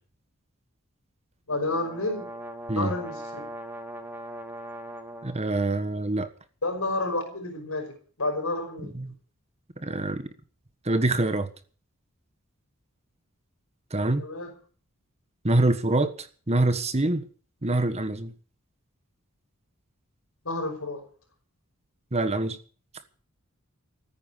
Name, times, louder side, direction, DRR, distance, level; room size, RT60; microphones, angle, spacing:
voice 1, 1.5-2.3 2.7-3.4 6.6-8.9 14.2-14.5 20.4-21.0, left 2 dB, 80° left, 5.7 m, -30 dB
sound 1, 1.5-5.4, right 1 dB, 10° right, 2.3 m, -40 dB
voice 2, 5.2-6.3 9.0-9.1 9.8-10.3 10.8-11.5 13.9-14.2 15.4-17.2 17.6-18.3 22.1-22.6, right 2 dB, 30° right, 1.4 m, -25 dB
14.5 x 9.7 x 8.3 m
head